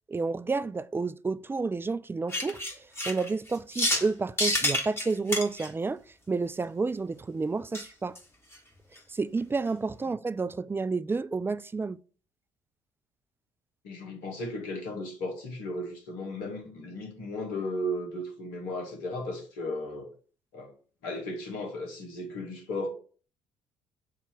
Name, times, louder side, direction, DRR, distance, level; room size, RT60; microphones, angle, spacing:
voice 1, 0.1-2.6 3.1-6.0 6.3-8.2 9.1-12.0, right 4 dB, 15° right, 0.3 m, -30 dB
sound 1, 2.3-4.1 4.4-5.7 7.7-7.9 8.2-8.3 8.5-8.6 9.0-9.1, left 1 dB, 15° left, 1.7 m, -29 dB
voice 2, 13.8-20.1 20.5-20.7 21.0-22.9, left 1 dB, 65° left, 1.9 m, -35 dB
7.1 x 2.9 x 4.8 m
figure-of-eight pair, 50°, 16 cm